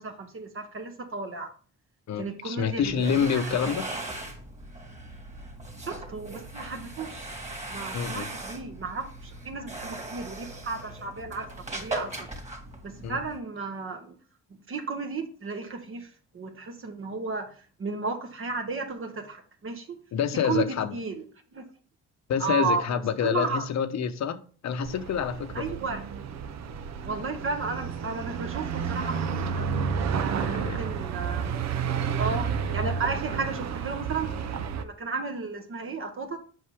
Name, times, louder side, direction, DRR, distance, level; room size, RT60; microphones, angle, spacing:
voice 1, 0.0-1.5 2.2-3.4 3.6-3.7 5.8-7.3 7.7-12.3 12.8-14.1 14.7-16.1 16.3-17.5 17.8-19.9 20.4-21.1 21.5-21.6 22.4-22.8 23.2-23.7 25.5-26.0 27.0-29.7 30.1-31.6 32.2-32.5 32.7-34.3 34.8-36.4, right 4 dB, 45° right, 1.3 m, -33 dB
voice 2, 2.1-3.8 7.9-8.3 13.0-13.2 20.1-21.0 22.3-25.8 30.4-30.8, left 7 dB, 65° left, 0.9 m, -27 dB
sound 1, 2.7-13.4, right 2 dB, 25° right, 2.4 m, -39 dB
sound 2, 24.8-34.8, right 6 dB, 60° right, 0.8 m, -31 dB
7.8 x 5.5 x 3.5 m
cardioid pair, 90°, 30 cm